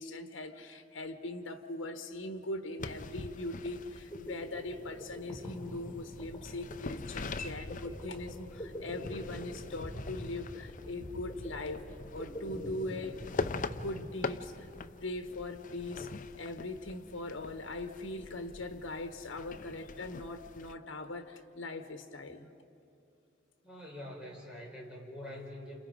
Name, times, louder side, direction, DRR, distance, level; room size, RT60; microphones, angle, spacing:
voice 1, 0.0-11.8 12.1-13.2 13.5-14.7 15.0-16.1 16.4-22.5 25.2-25.4, left 2 dB, 75° left, 8 dB, 1.3 m, -41 dB
sound 1, 2.8-20.7, left 4 dB, 45° left, 0.6 m, -44 dB
sound 2, 3.8-14.6, equal, 20° left, 3.4 m, -45 dB
voice 2, 23.6-25.8, left 1 dB, 5° right, -3 dB, 4.5 m, -45 dB
29.5 x 27.5 x 5.1 m, 2.6 s
head